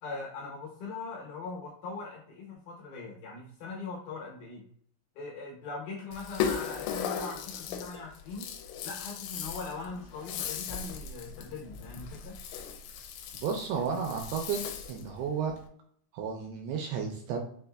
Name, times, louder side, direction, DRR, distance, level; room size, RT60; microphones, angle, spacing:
voice 1, 0.0-4.6 5.2-8.5 8.8-12.4, left 3 dB, 75° left, -3 dB, 2.4 m, -41 dB
Rattle (instrument), 6.1-15.1, left 8 dB, 90° left, 2.8 m, -37 dB
voice 2, 13.4-14.6 14.9-15.5 16.1-17.5, right 6 dB, 85° right, 2 dB, 2.3 m, -32 dB
6.4 x 2.6 x 2.2 m, 0.62 s
omnidirectional pair, 5.0 m